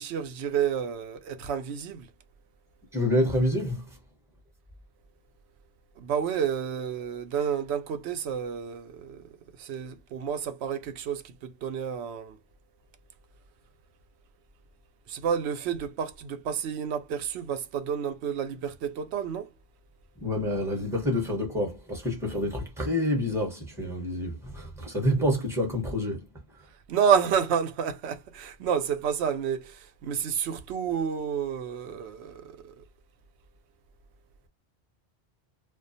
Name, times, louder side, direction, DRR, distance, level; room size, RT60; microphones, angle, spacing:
voice 1, 0.0-2.1 6.0-9.3 9.6-12.4 15.1-19.5 26.9-32.7, right 7 dB, 80° right, 0.9 m, -30 dB
voice 2, 2.9-4.0 20.2-26.3, left 1 dB, 5° right, 0.8 m, -28 dB
2.3 x 2.2 x 2.5 m
omnidirectional pair, 1.1 m